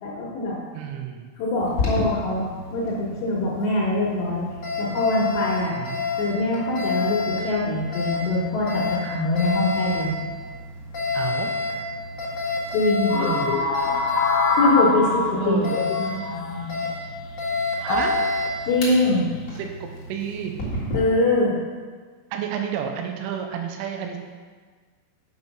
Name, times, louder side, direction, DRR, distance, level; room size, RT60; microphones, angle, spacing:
voice 1, 0.0-0.6 1.4-4.4 4.8-5.7 6.2-10.1 12.7-13.1 14.5-15.8 18.7-19.3 20.9-21.6, left 2 dB, 70° left, -8 dB, 3.2 m, -23 dB
voice 2, 0.7-1.3 5.8-6.0 11.1-11.5 13.2-13.6 15.4-15.8 17.8-18.2 19.6-20.5 22.3-24.2, right 8 dB, 85° right, 3 dB, 3.2 m, -30 dB
Alarm, 1.6-21.0, left 3 dB, 50° left, 1.9 m, -29 dB
sound 1, 13.1-16.9 17.8-18.2 19.1-19.4, left 4 dB, 90° left, 3.2 m, -25 dB
8.2 x 5.3 x 5.3 m, 1.5 s
omnidirectional pair, 5.6 m